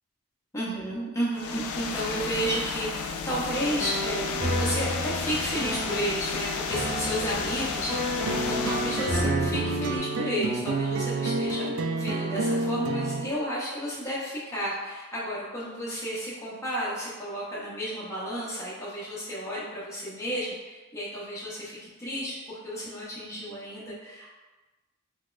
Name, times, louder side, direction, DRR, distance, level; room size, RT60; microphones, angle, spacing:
voice 1, 0.5-24.3, equal, 15° left, -8 dB, 0.6 m, -32 dB
sound 1, 1.3-9.3, left 5 dB, 85° left, 0.3 m, -33 dB
sound 2, 3.5-10.0, equal, 35° right, 1.1 m, -32 dB
sound 3, 8.3-13.3, right 3 dB, 75° right, 0.3 m, -29 dB
3.9 x 2.2 x 2.4 m, 1.2 s
head